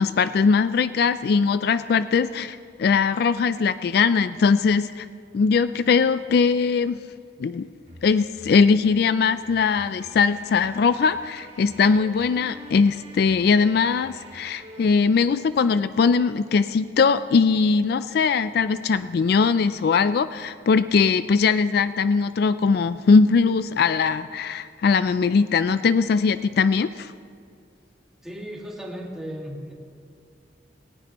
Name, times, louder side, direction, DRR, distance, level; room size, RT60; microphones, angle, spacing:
voice 1, 0.0-5.1 5.3-7.0 7.4-7.7 8.0-27.1, left 5 dB, 60° left, 13 dB, 0.3 m, -20 dB
sound 1, 7.8-15.0, right 1 dB, 35° right, 1.3 m, -47 dB
voice 2, 28.2-29.7, equal, 5° right, -2 dB, 1.9 m, -35 dB
18.5 x 18.0 x 3.0 m, 2.3 s
head